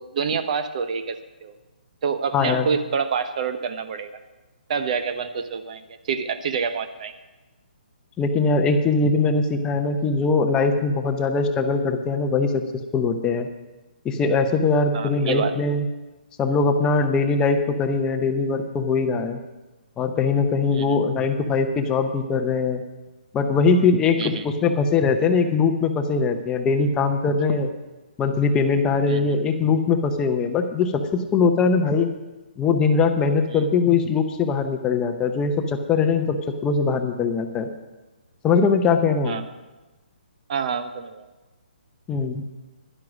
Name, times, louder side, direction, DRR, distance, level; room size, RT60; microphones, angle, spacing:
voice 1, 0.0-1.6 2.0-4.2 4.7-7.1 14.9-15.5 20.7-21.0 24.2-24.5 29.1-29.4 33.5-33.6 39.2-39.5 40.5-41.3, right 6 dB, 45° right, 11 dB, 0.9 m, -27 dB
voice 2, 2.3-2.7 8.2-12.6 12.9-13.5 14.0-15.8 16.4-19.4 20.0-22.8 23.3-27.7 28.2-32.1 32.6-37.7 38.4-39.4 42.1-42.4, left 4 dB, 15° left, 6 dB, 0.8 m, -21 dB
11.0 x 10.5 x 6.2 m, 1.1 s
figure-of-eight pair, 145°, 5 cm